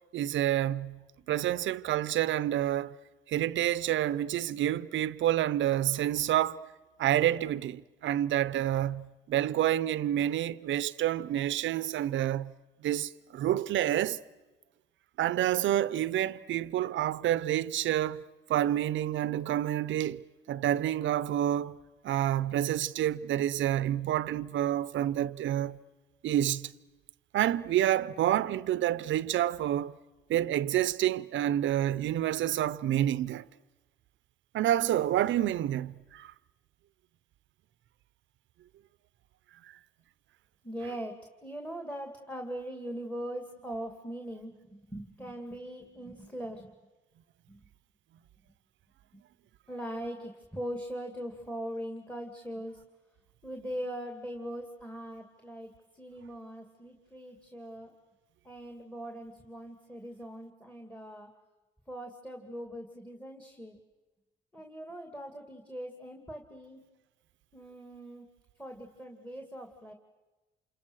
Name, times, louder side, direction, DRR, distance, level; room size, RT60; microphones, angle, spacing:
voice 1, 0.1-1.0 1.3-2.9 3.3-6.6 7.0-12.5 12.8-14.2 15.2-18.2 18.5-21.8 22.0-25.8 26.2-26.7 27.3-29.9 30.3-33.4 34.5-36.3, right 12 dB, 75° right, 0.8 m, -28 dB
voice 2, 40.6-46.7 47.5-47.6 49.7-52.8 53.4-57.9 58.4-61.3 61.9-63.8 64.5-66.8 67.5-68.3 68.6-69.9, equal, 5° left, 2.5 m, -41 dB
28.0 x 27.0 x 6.5 m
cardioid pair, 90°, 20 cm